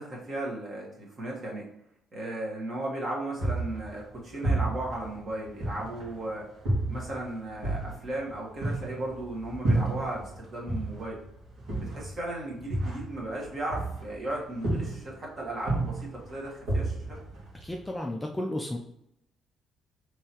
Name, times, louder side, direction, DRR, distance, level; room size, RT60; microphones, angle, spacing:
voice 1, 0.0-1.7 2.1-6.5 6.9-11.2 11.8-17.2, right 1 dB, 35° right, -3 dB, 1.3 m, -36 dB
sound 1, 3.4-6.2 6.7-10.4 10.7-14.3 14.6-15.2 15.6-17.9, right 2 dB, 85° right, 1.7 m, -31 dB
voice 2, 17.6-18.8, left 1 dB, 10° left, 1 dB, 0.3 m, -33 dB
5.5 x 3.2 x 2.9 m, 0.76 s
cardioid pair, 170°, 0 cm